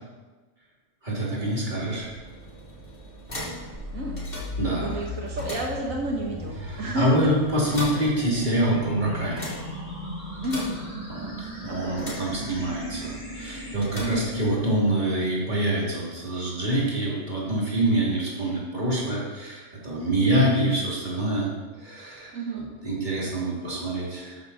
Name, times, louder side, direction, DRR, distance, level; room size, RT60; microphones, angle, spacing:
voice 1, 1.0-2.1 4.6-5.0 6.7-9.5 11.1-21.5 21.8-24.4, right 1 dB, 35° right, -5 dB, 3.4 m, -26 dB
sound 1, 1.7-15.0, equal, 45° left, 3.6 m, -41 dB
sound 2, 3.7-13.7, left 1 dB, 75° left, 4.3 m, -37 dB
voice 2, 4.8-7.3 10.4-10.7 11.7-12.2 14.0-14.3 20.2-20.5 22.3-22.7, right 1 dB, 85° right, -1 dB, 1.9 m, -31 dB
13.0 x 9.5 x 4.3 m, 1.3 s
omnidirectional pair, 1.4 m